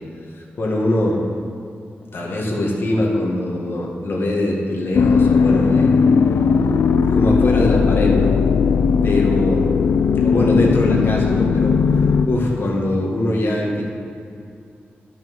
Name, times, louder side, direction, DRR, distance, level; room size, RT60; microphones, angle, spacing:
voice 1, 0.4-1.2 2.1-5.9 7.1-8.3 9.0-9.7 10.2-13.8, left 1 dB, 60° left, -2 dB, 1.9 m, -22 dB
sound 1, 4.9-12.3, left 5 dB, 75° left, 0.4 m, -17 dB
10.5 x 5.8 x 6.4 m, 2.4 s
cardioid pair, 70°, 4 cm